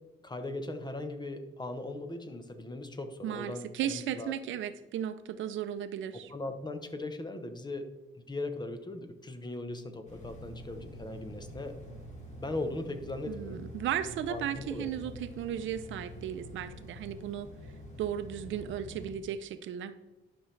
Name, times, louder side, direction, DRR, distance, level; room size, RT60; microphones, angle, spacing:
voice 1, 0.2-4.3 6.1-7.9 8.3-11.8 12.3-13.6 14.3-14.9, left 2 dB, 20° left, 8 dB, 1.0 m, -39 dB
voice 2, 3.2-6.3 13.3-17.5 18.0-20.0, right 10 dB, 75° right, 11 dB, 0.6 m, -35 dB
sound 1, 10.1-19.1, left 1 dB, 35° left, 2.8 m, -46 dB
11.0 x 6.0 x 3.3 m, 1.1 s
cardioid pair, 90°, 20 cm